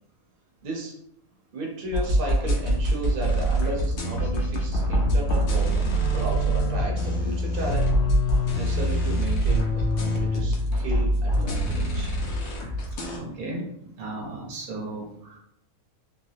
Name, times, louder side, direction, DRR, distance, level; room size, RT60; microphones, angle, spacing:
voice 1, 0.6-0.9 1.5-7.9 8.2-12.1 15.2-15.4, right 1 dB, 45° right, -2 dB, 1.0 m, -34 dB
sound 1, 1.9-13.2, right 1 dB, 60° left, 0.9 m, -25 dB
sound 2, 5.1-12.2, left 3 dB, 85° left, 1.1 m, -28 dB
voice 2, 13.2-13.6 14.0-15.1, right 2 dB, 85° right, -2 dB, 1.4 m, -34 dB
3.3 x 3.0 x 2.7 m, 0.75 s
omnidirectional pair, 1.5 m